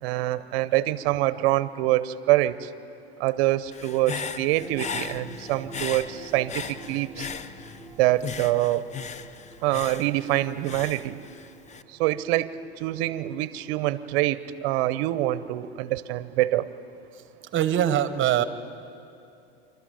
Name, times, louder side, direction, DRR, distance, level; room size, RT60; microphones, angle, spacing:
voice 1, 0.0-2.7 3.2-7.3 8.0-8.8 9.6-11.2 12.0-12.5 12.8-16.7, right 16 dB, 60° right, 16 dB, 0.9 m, -25 dB
Human voice / Breathing, 3.7-7.9 8.2-11.8, left 6 dB, 20° left, 0.7 m, -37 dB
sound 1, 4.6-15.1 15.7-15.8, right 1 dB, 5° right, 1.7 m, -48 dB
voice 2, 17.5-18.4, right 11 dB, 35° right, 13 dB, 1.3 m, -22 dB
28.0 x 12.5 x 9.2 m, 2.5 s
hypercardioid pair, 100°, 32 cm